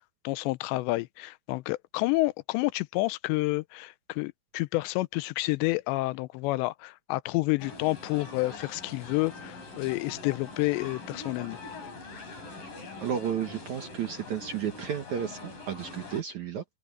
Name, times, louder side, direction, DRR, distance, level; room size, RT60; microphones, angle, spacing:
voice 1, 0.2-11.6, left 21 dB, 85° left, 2.8 m, -29 dB
sound 1, 7.6-16.2, left 3 dB, 50° left, 8.7 m, -43 dB
voice 2, 13.0-16.6, right 8 dB, 65° right, 2.0 m, -32 dB
open air
omnidirectional pair, 5.0 m